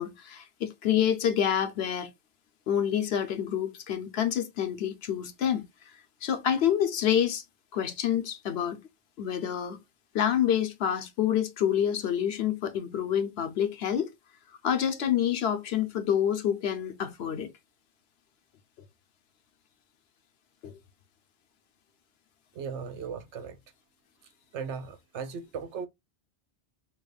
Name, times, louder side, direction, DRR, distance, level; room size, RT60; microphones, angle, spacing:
voice 1, 0.0-2.1 2.7-5.9 6.2-7.4 7.7-8.8 9.2-9.8 10.1-14.1 14.6-17.5 20.6-20.8, left 9 dB, 65° left, 0.9 m, -27 dB
voice 2, 22.6-23.6 24.5-25.9, right 6 dB, 80° right, 0.9 m, -37 dB
4.9 x 3.0 x 2.3 m
omnidirectional pair, 1.2 m